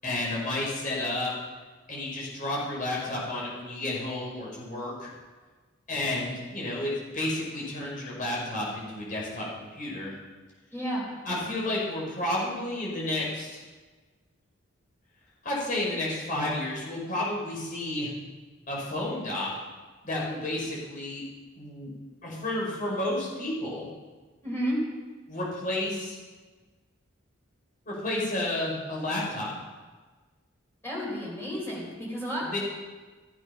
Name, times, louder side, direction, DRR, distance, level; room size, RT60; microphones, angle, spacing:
voice 1, 0.0-1.3 1.9-5.1 5.9-10.2 11.2-13.6 15.4-18.1 18.7-19.6 20.0-21.2 21.6-21.9 22.2-23.9 25.3-26.2 27.9-29.5 32.4-32.6, left 1 dB, 45° left, -5 dB, 5.4 m, -31 dB
voice 2, 10.7-11.1 24.4-24.8 30.8-32.6, equal, 10° left, -4 dB, 4.5 m, -31 dB
15.0 x 8.9 x 5.8 m, 1.3 s
head